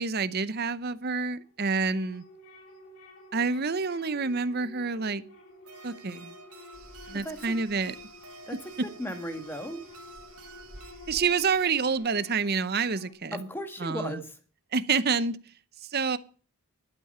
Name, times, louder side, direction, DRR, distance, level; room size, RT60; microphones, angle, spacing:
voice 1, 0.0-2.2 3.3-5.2 5.8-6.3 7.1-7.9 11.1-13.4 13.8-14.2 14.7-15.4 15.9-16.2, right 5 dB, 45° right, 0.7 m, -28 dB
sound 1, 1.2-13.1, left 3 dB, 75° left, 3.3 m, -51 dB
sound 2, 5.6-10.9, right 5 dB, 90° right, 1.8 m, -51 dB
sound 3, 6.7-12.0, right 2 dB, 65° right, 1.9 m, -53 dB
voice 2, 7.1-7.6 8.5-9.8 13.3-14.4, equal, 10° left, 1.8 m, -36 dB
12.0 x 8.7 x 5.5 m
head